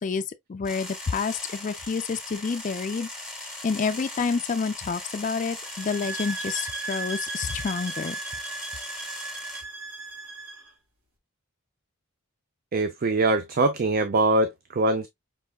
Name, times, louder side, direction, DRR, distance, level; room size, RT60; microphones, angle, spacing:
voice 1, 0.0-3.1 3.4-8.2, left 5 dB, 35° left, 0.4 m, -29 dB
sound 1, 0.6-9.6, left 1 dB, 5° right, 2.1 m, -39 dB
sound 2, 5.6-10.7, right 3 dB, 75° right, 2.2 m, -36 dB
voice 2, 12.7-15.1, right 2 dB, 45° right, 0.5 m, -23 dB
5.3 x 3.5 x 2.2 m
head